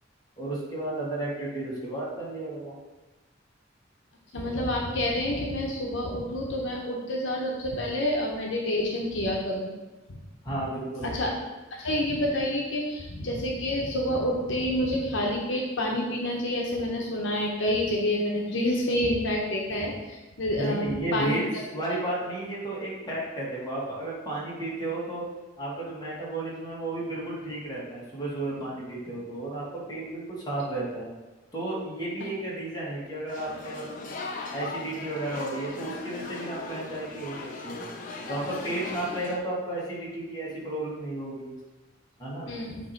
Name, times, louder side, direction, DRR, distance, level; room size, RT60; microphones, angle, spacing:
voice 1, 0.4-2.7 10.4-11.2 20.6-25.2 25.6-31.1 31.5-34.1 34.5-37.4 37.6-37.9 38.3-41.5 42.2-42.5, right 2 dB, 20° left, -6 dB, 1.9 m, -33 dB
voice 2, 4.3-9.7 10.1-10.2 10.5-10.6 11.0-11.3 11.7-21.3 42.5-42.8, left 1 dB, 75° left, -1 dB, 0.9 m, -28 dB
sound 1, 33.3-39.4, left 3 dB, 45° left, 0.7 m, -38 dB
8.3 x 3.0 x 4.4 m, 1.1 s
head